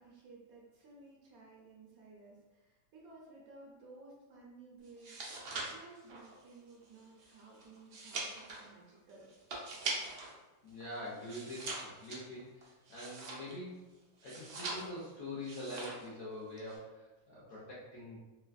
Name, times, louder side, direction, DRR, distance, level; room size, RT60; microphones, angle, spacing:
voice 1, 0.0-9.4, right 3 dB, 65° right, -4 dB, 1.1 m, -56 dB
sound 1, 4.9-10.4 10.7-13.7 14.2-15.1 15.4-16.1 16.4-16.8, right 3 dB, 90° right, 0.5 m, -43 dB
voice 2, 10.6-13.9 14.2-18.2, left 1 dB, 65° left, -6 dB, 0.8 m, -45 dB
3.3 x 2.4 x 2.3 m, 1.1 s
omnidirectional pair, 1.8 m